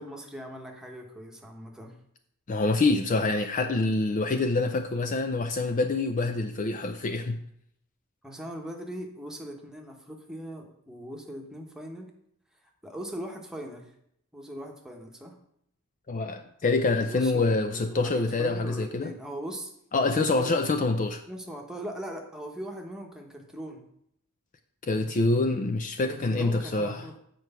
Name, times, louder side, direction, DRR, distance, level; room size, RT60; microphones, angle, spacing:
voice 1, 0.0-2.0 8.2-12.1 12.8-13.9 14.3-15.4 17.0-19.7 20.1-20.6 21.3-23.8 26.0-27.2, equal, 5° right, 1 dB, 1.1 m, -40 dB
voice 2, 2.5-7.4 16.1-19.1 19.9-21.2 24.8-27.1, left 3 dB, 35° left, 7 dB, 0.4 m, -26 dB
7.8 x 4.6 x 6.8 m, 0.72 s
head